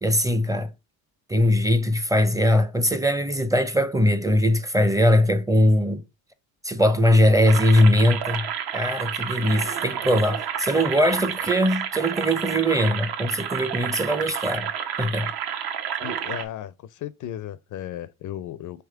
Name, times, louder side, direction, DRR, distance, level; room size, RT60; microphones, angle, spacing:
voice 1, 0.0-0.7 1.3-6.0 6.6-8.4 8.7-14.7 15.0-15.3, left 1 dB, 10° right, 0.6 m, -21 dB
sound 1, 7.5-16.4, right 8 dB, 60° right, 1.0 m, -30 dB
voice 2, 16.0-18.8, left 11 dB, 45° left, 0.5 m, -35 dB
3.6 x 3.1 x 4.6 m
supercardioid pair, 75°, 44 cm